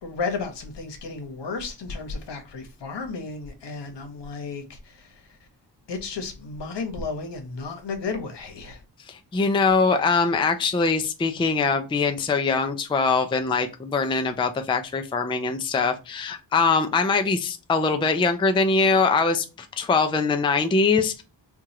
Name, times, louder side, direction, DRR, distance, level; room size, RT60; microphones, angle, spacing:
voice 1, 0.0-5.2 5.9-8.8, left 4 dB, 75° left, 1.1 m, -33 dB
voice 2, 9.1-21.2, left 4 dB, 15° left, 0.4 m, -22 dB
4.5 x 2.4 x 2.8 m
wide cardioid pair, 155°, 42 cm